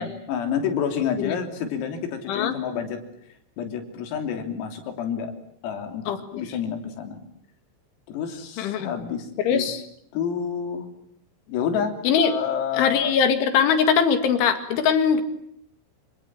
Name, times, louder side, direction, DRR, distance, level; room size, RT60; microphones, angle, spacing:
voice 1, 0.0-3.0 3.6-5.3 5.6-7.2 8.1-9.7 10.1-10.9 11.5-13.2, left 7 dB, 85° left, 5 dB, 5.9 m, -29 dB
voice 2, 8.6-8.9 9.5-9.8 12.1-12.3 12.7-15.2, left 7 dB, 70° left, 9 dB, 4.2 m, -21 dB
28.0 x 26.0 x 7.5 m, 0.68 s
omnidirectional pair, 5.9 m